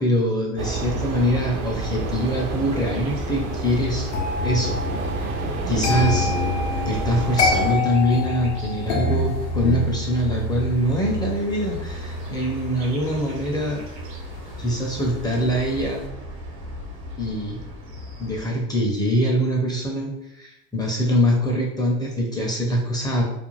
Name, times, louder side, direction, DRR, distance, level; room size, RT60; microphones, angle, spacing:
voice 1, 0.0-4.1 4.4-4.8 5.1-5.3 5.7-6.3 6.9-13.8 14.6-16.0 17.2-17.6 18.2-23.2, equal, 10° left, -1 dB, 0.5 m, -23 dB
sound 1, 0.6-7.8, right 3 dB, 60° right, 0.6 m, -29 dB
sound 2, 2.9-18.5, left 2 dB, 75° right, 1.1 m, -38 dB
sound 3, 4.1-15.1 15.4-15.8, left 2 dB, 50° left, 0.6 m, -27 dB
2.5 x 2.2 x 3.0 m, 0.82 s
supercardioid pair, 105°, 32 cm